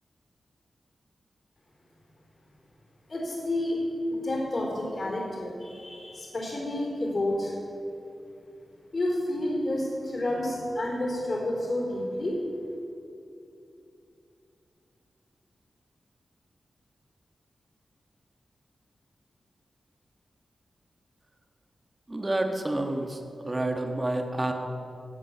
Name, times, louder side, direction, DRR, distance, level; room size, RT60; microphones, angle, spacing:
voice 1, 3.1-3.8 4.1-7.5 8.9-12.4, left 1 dB, 40° left, -2 dB, 3.8 m, -30 dB
voice 2, 22.1-24.5, right 1 dB, 20° right, 4 dB, 1.4 m, -29 dB
17.5 x 8.8 x 7.0 m, 2.7 s
wide cardioid pair, 150°, 0 cm